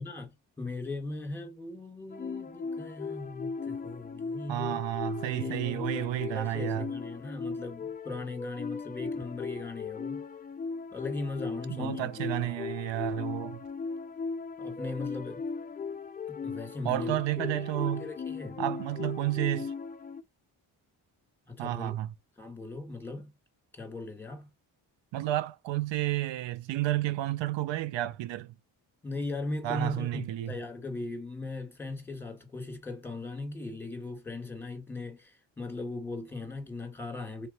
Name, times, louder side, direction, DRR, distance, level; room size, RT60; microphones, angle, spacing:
voice 1, 0.0-4.8 5.3-10.2 10.9-12.1 12.4-12.5 14.6-15.4 16.3-18.6 21.5-21.9 22.4-23.3 23.7-24.5 29.0-37.5, left 2 dB, 5° left, 1.7 m, -39 dB
sound 1, 2.1-20.2, left 4 dB, 20° left, 0.3 m, -37 dB
voice 2, 4.5-6.9 11.7-13.6 16.8-18.1 18.6-19.7 21.6-22.1 25.1-28.5 29.6-30.6, right 15 dB, 75° right, 0.6 m, -31 dB
3.4 x 2.9 x 3.9 m
cardioid pair, 65°, 45 cm